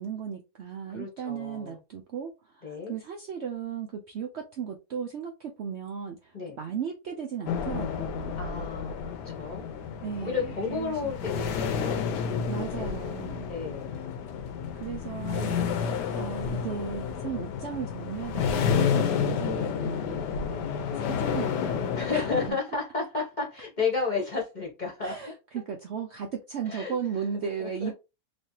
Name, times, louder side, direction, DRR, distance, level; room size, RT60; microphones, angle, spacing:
voice 1, 0.0-8.5 10.0-11.1 12.5-13.5 14.7-20.2 21.0-22.6 25.0-27.9, right 7 dB, 90° right, 0.5 m, -36 dB
voice 2, 0.9-1.8 2.6-2.9 6.3-6.6 8.4-9.7 10.2-12.9 13.5-13.9 20.4-20.7 21.9-25.2 26.7-26.9 27.6-27.9, left 4 dB, 35° left, 0.9 m, -32 dB
sound 1, 7.5-22.5, left 7 dB, 80° left, 1.2 m, -30 dB
3.4 x 3.1 x 2.7 m
omnidirectional pair, 1.9 m